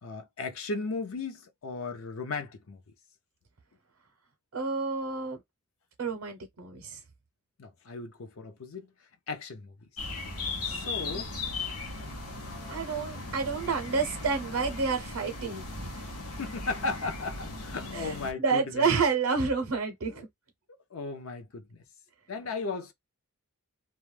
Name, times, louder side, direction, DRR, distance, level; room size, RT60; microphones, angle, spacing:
voice 1, 0.0-2.8 7.6-8.9 9.3-9.7 10.6-11.3 16.4-18.9 20.1-20.2 20.7-21.8 22.3-22.9, left 3 dB, 65° left, 0.6 m, -36 dB
voice 2, 4.5-5.4 6.0-7.0 10.7-11.2 12.7-16.0 17.9-20.3, right 5 dB, 70° right, 0.6 m, -30 dB
sound 1, 10.0-18.3, left 3 dB, 90° left, 0.8 m, -37 dB
2.3 x 2.1 x 3.1 m
head